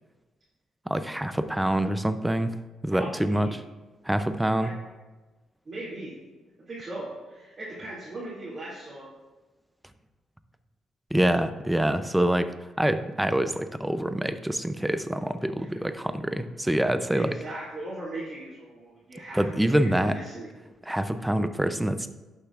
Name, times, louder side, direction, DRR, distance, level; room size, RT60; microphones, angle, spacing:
voice 1, 0.9-2.5 2.8-3.6 4.1-4.7 11.1-17.4 19.3-20.2 20.9-22.2, right 1 dB, 5° right, 11 dB, 0.5 m, -26 dB
voice 2, 2.9-3.5 4.6-4.7 5.6-6.1 6.7-9.1 15.6-15.8 17.1-20.5, right 1 dB, 35° right, -8 dB, 2.4 m, -39 dB
11.5 x 6.6 x 2.4 m, 1.2 s
cardioid pair, 90°, 0 cm